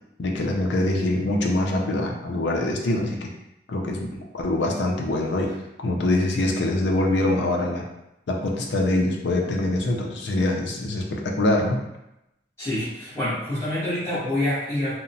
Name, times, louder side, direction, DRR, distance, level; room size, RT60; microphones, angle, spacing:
voice 1, 0.2-3.3 3.7-5.5 5.8-7.8 8.3-11.8, left 1 dB, 80° left, 0 dB, 0.5 m, -24 dB
voice 2, 12.6-14.9, left 1 dB, 15° left, -14 dB, 0.9 m, -26 dB
2.9 x 2.1 x 2.6 m, 0.87 s
head